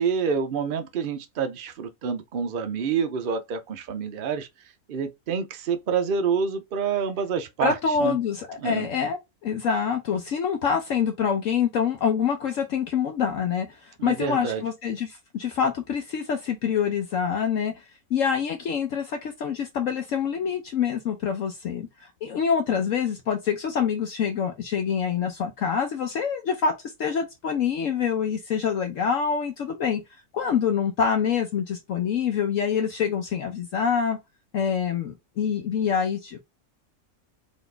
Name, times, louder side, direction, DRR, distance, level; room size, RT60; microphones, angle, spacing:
voice 1, 0.0-4.5 4.9-7.7 8.0-8.1 8.6-8.9 14.0-14.6, right 6 dB, 65° right, 0.5 m, -27 dB
voice 2, 7.6-17.8 18.1-26.7 27.0-30.0 30.3-34.2 34.5-36.4, left 7 dB, 65° left, 1.0 m, -26 dB
4.1 x 3.0 x 3.3 m
omnidirectional pair, 1.5 m